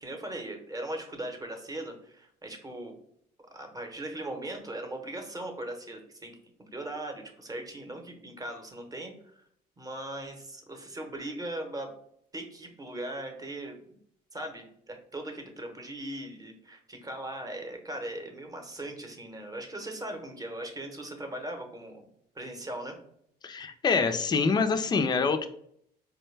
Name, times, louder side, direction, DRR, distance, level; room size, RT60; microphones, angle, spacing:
voice 1, 0.0-2.9 3.5-6.3 6.7-9.4 9.8-11.9 12.3-14.0 14.3-22.0 22.3-23.0, right 1 dB, 20° right, 4 dB, 0.8 m, -39 dB
voice 2, 23.4-25.5, left 5 dB, 25° left, 8 dB, 0.4 m, -25 dB
4.5 x 2.1 x 3.2 m, 0.67 s
cardioid pair, 110°, 17 cm